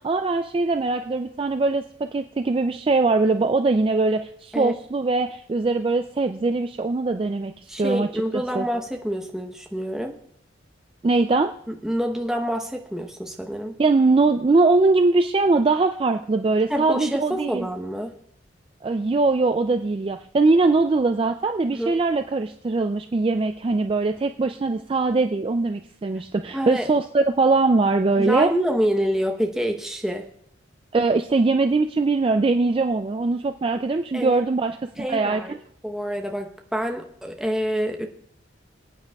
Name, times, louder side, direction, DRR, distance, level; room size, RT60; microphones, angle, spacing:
voice 1, 0.0-7.5 7.8-8.2 8.6-8.7 11.0-11.5 13.8-17.7 18.8-28.5 30.9-35.6, right 3 dB, 30° right, 7 dB, 0.3 m, -21 dB
voice 2, 7.7-10.1 11.7-13.8 16.7-18.1 21.7-21.9 26.5-26.9 28.2-30.3 34.1-34.4 35.0-35.6 35.8-38.1, equal, 5° right, 2 dB, 0.9 m, -27 dB
23.5 x 9.0 x 2.3 m, 0.69 s
head